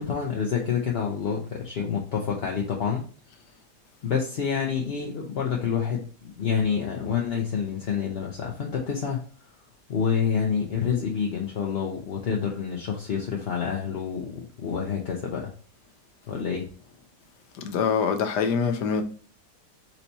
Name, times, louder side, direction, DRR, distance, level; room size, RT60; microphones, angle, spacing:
voice 1, 0.0-3.0 4.0-9.2 9.9-15.5 16.3-16.7, left 7 dB, 50° left, 0.7 m, -28 dB
voice 2, 17.6-19.0, left 6 dB, 85° left, 1.3 m, -24 dB
4.4 x 2.9 x 4.0 m
omnidirectional pair, 1.8 m